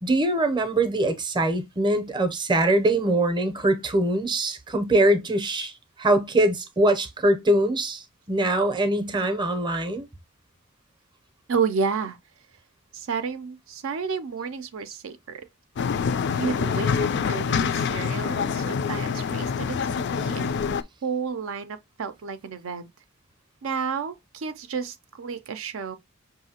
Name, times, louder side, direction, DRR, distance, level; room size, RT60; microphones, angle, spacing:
voice 1, 0.0-5.7 6.0-10.1, right 1 dB, 20° right, 0.6 m, -23 dB
voice 2, 11.5-12.2 12.9-15.5 16.3-20.7 21.0-22.9 23.6-26.0, right 5 dB, 70° right, 0.5 m, -31 dB
sound 1, 15.8-20.8, left 6 dB, 55° left, 0.3 m, -26 dB
5.6 x 2.6 x 2.8 m
head